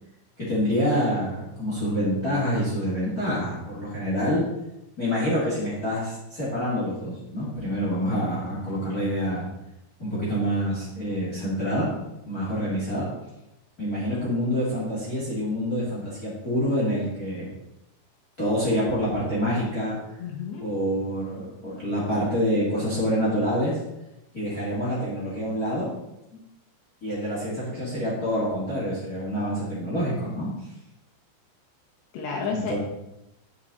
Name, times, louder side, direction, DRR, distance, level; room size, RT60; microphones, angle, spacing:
voice 1, 0.4-4.4 5.0-9.5 10.0-11.9 12.3-13.1 13.8-17.5 18.4-20.0 20.6-23.8 24.3-25.9 27.0-30.5 32.5-32.8, equal, 25° left, -7 dB, 2.6 m, -26 dB
voice 2, 20.2-20.7 32.1-32.8, left 5 dB, 70° left, 0 dB, 3.2 m, -31 dB
10.0 x 6.7 x 4.2 m, 0.89 s
omnidirectional pair, 5.2 m